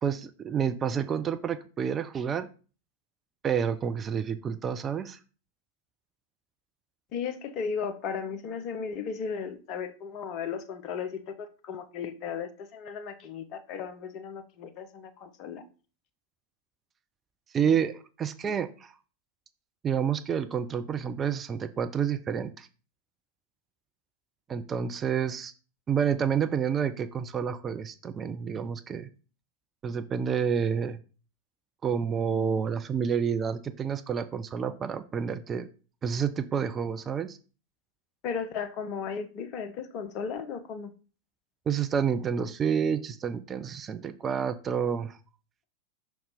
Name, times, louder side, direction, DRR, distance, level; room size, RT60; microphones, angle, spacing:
voice 1, 0.0-2.5 3.4-5.2 17.5-18.9 19.8-22.7 24.5-25.5 25.9-29.1 29.8-31.0 31.8-35.7 36.0-37.4 41.7-45.2, right 7 dB, 25° right, 0.5 m, -29 dB
voice 2, 7.1-15.6 38.2-40.9, left 6 dB, 40° left, 0.9 m, -35 dB
5.8 x 4.2 x 4.9 m
figure-of-eight pair, 90°, 0 cm